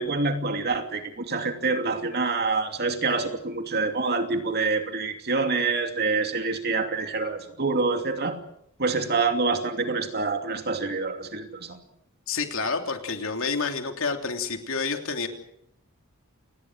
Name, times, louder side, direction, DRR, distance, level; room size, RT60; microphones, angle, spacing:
voice 1, 0.0-8.4 8.8-11.8, right 4 dB, 45° right, 6 dB, 2.8 m, -26 dB
voice 2, 12.3-15.3, left 4 dB, 65° left, 5 dB, 3.2 m, -29 dB
29.0 x 20.0 x 6.3 m, 0.75 s
head